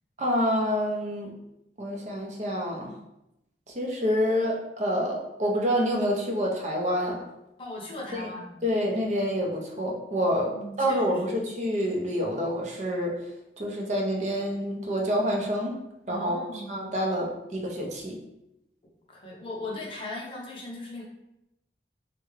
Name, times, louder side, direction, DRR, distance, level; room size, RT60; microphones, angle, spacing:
voice 1, 0.2-1.3 1.8-2.9 3.7-7.2 8.1-8.3 8.6-10.5 10.8-13.1 13.6-15.7 16.1-18.2, equal, 40° right, 0 dB, 0.6 m, -27 dB
voice 2, 7.6-8.5 10.5-11.3 16.1-16.8 19.1-21.0, left 1 dB, 30° left, -3 dB, 0.7 m, -38 dB
3.5 x 2.2 x 3.1 m, 0.88 s
head